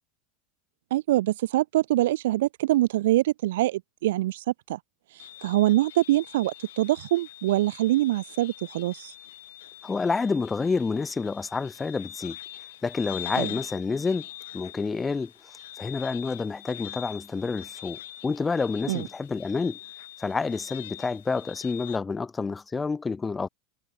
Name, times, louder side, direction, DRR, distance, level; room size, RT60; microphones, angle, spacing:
voice 1, 0.9-4.8 5.4-9.1 13.4-13.5 18.9-19.1, right 15 dB, 80° right, 0.6 m, -24 dB
sound 1, 5.2-22.0, left 14 dB, 80° left, 6.7 m, -43 dB
voice 2, 9.8-12.4 12.8-14.3 14.5-15.3 15.8-19.8 20.2-23.5, left 4 dB, 20° left, 1.0 m, -28 dB
hypercardioid pair, 100°, 0 cm